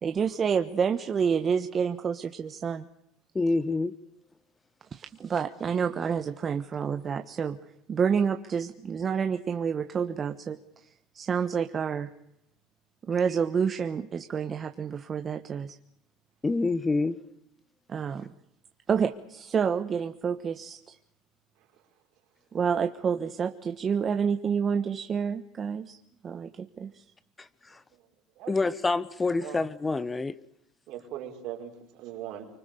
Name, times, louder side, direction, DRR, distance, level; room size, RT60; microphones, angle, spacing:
voice 1, 0.0-2.9 4.9-7.6 7.9-12.1 13.1-15.8 17.9-18.3 18.9-21.0 22.5-26.0 26.2-27.0, right 6 dB, 35° right, 1.2 m, -29 dB
voice 2, 3.3-4.0 16.4-17.2 27.4-27.8 28.5-30.4, left 3 dB, 20° left, 1.2 m, -27 dB
voice 3, 30.9-32.5, right 11 dB, 65° right, 5.0 m, -39 dB
25.0 x 24.5 x 6.8 m
supercardioid pair, 85°, 0 cm